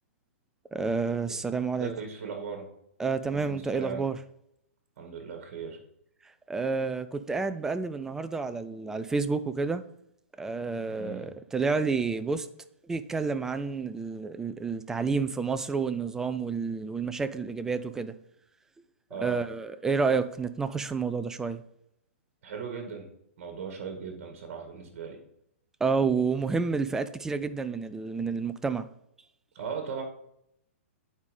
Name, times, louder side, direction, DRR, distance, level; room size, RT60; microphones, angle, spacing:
voice 1, 0.7-1.9 3.0-4.2 6.5-9.9 10.4-12.5 12.9-18.1 19.2-21.6 25.8-28.9, right 4 dB, 5° right, 0.4 m, -29 dB
voice 2, 1.8-2.6 3.3-4.0 5.0-5.8 10.9-11.3 19.1-19.4 22.4-23.1 23.4-25.2 29.5-30.0, right 6 dB, 50° right, 2.2 m, -38 dB
9.5 x 4.9 x 5.4 m
hypercardioid pair, 150°, 8 cm